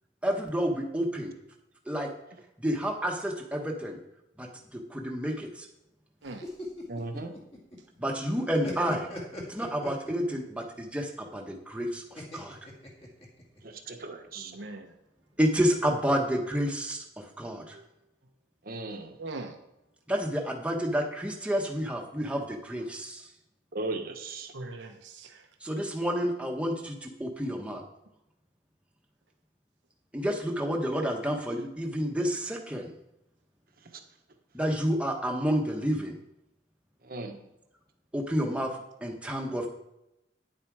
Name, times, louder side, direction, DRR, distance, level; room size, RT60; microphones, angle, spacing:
voice 1, 0.2-1.3 1.9-2.1 2.6-4.0 4.4-4.5 4.7-5.7 8.0-9.1 9.5-12.0 12.3-12.6 15.4-17.0 17.4-17.8 20.1-23.2 25.6-27.8 30.1-32.9 34.5-36.1 38.1-38.7 39.0-39.7, equal, 5° right, 1 dB, 1.2 m, -29 dB
sound 1, 6.3-8.0 8.3-10.5 12.2-13.6, left 1 dB, 35° left, 2.2 m, -41 dB
voice 2, 6.9-7.3 13.6-14.5 18.6-19.2 23.7-24.5 37.0-37.4, right 2 dB, 55° right, 5 dB, 1.1 m, -37 dB
voice 3, 14.5-14.9 19.2-19.6 24.5-25.4, right 2 dB, 85° right, 4 dB, 1.0 m, -40 dB
9.7 x 7.5 x 4.8 m, 0.87 s
head